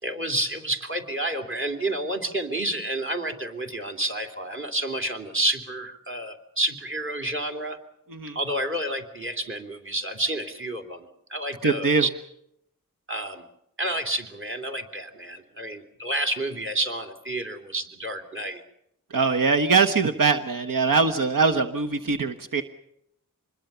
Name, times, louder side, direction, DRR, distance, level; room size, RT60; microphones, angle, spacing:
voice 1, 0.0-7.8 8.3-12.1 13.1-13.4 13.8-18.6 19.2-19.4, right 1 dB, 40° right, 5 dB, 3.3 m, -30 dB
voice 2, 11.6-12.0 19.1-22.6, right 4 dB, 80° right, 8 dB, 1.3 m, -22 dB
26.0 x 21.0 x 7.0 m, 0.77 s
wide cardioid pair, 90°, 33 cm